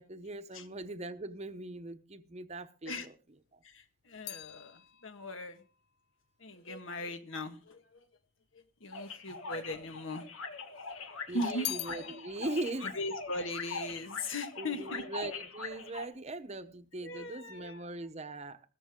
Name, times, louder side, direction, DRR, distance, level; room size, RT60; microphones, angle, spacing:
voice 1, 0.0-3.1 3.5-3.6 11.3-13.0 14.6-18.6, right 2 dB, 30° right, 0.9 m, -40 dB
sound 1, 3.3-7.7 8.5-9.3 9.6-10.7 11.0-14.6 14.9-15.4, left 13 dB, 55° left, 0.6 m, -46 dB
voice 2, 3.6-5.6 6.4-8.1 8.5-10.3 11.3-11.7 12.8-15.1 17.0-17.8, left 1 dB, 70° left, 1.6 m, -39 dB
sound 2, 8.9-16.1, left 4 dB, 90° left, 1.9 m, -42 dB
15.5 x 14.0 x 3.7 m
head